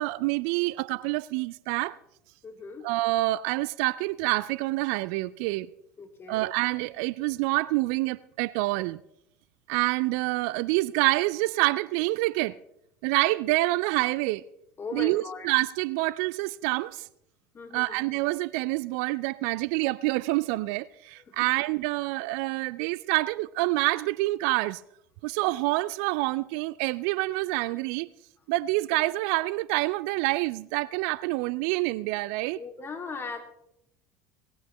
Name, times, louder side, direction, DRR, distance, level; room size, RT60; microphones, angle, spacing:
voice 1, 0.0-2.0 2.8-5.7 6.3-9.0 9.7-12.6 13.0-14.4 14.9-17.1 17.7-24.8 25.2-28.1 28.5-32.6, right 20 dB, 60° right, 0.4 m, -27 dB
voice 2, 2.4-2.9 6.0-6.4 14.8-15.5 17.5-18.0 21.3-21.5 32.5-33.4, left 4 dB, 25° left, 2.6 m, -38 dB
18.5 x 16.0 x 3.2 m
figure-of-eight pair, 70°, 9 cm